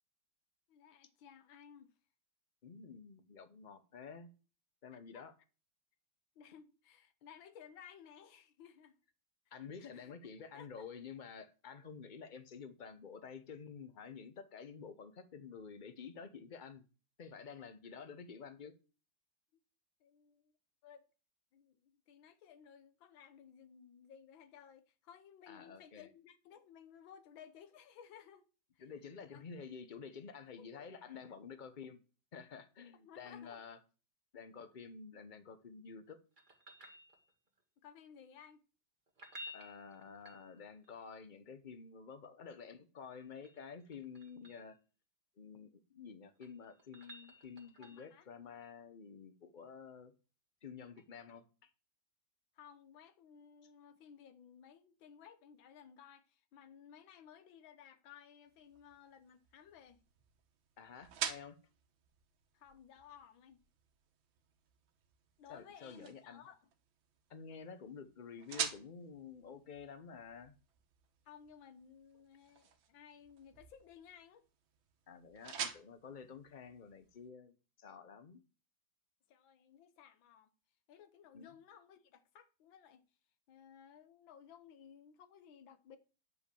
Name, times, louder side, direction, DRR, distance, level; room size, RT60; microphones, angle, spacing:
voice 1, 0.7-1.9 4.9-5.2 6.3-9.0 9.5-9.6 9.8-10.1 10.5-10.9 17.9-18.0 20.0-20.5 20.8-21.0 21.5-28.4 28.7-28.8 29.3-29.4 30.6-30.9 32.9-33.6 37.8-38.6 47.8-48.3 52.5-60.0 62.5-63.6 65.4-66.7 71.2-74.4 79.3-80.5 80.9-83.1 83.5-86.0, left 8 dB, 85° left, 1.7 m, -58 dB
voice 2, 2.6-4.3 4.8-5.3 9.5-16.8 17.2-18.7 25.5-26.1 28.8-32.0 32.3-33.8 34.3-36.2 39.5-44.8 45.4-50.1 50.6-51.7 60.8-61.6 65.5-66.4 67.3-70.5 75.1-78.4 81.3-81.5, left 6 dB, 45° left, 0.6 m, -50 dB
sound 1, 36.4-37.6 39.1-40.9 43.0-44.7 46.1-48.2 50.9-51.0, equal, 25° right, 1.7 m, -54 dB
sound 2, 58.5-77.3, right 8 dB, 85° right, 1.8 m, -48 dB
9.7 x 5.2 x 6.9 m
omnidirectional pair, 2.1 m